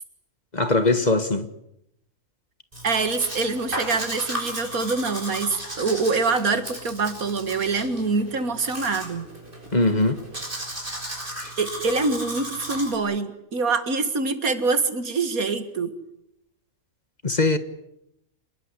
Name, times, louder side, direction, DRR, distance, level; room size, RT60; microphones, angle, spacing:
voice 1, 0.5-1.5 9.7-10.2 11.4-11.5 17.2-17.6, left 2 dB, 30° left, 1.5 m, -21 dB
Domestic sounds home sounds, 2.7-13.0, right 1 dB, 35° right, 6.6 m, -35 dB
voice 2, 2.8-9.3 11.6-15.9, right 4 dB, 80° right, 2.4 m, -25 dB
27.5 x 20.5 x 9.8 m
omnidirectional pair, 1.5 m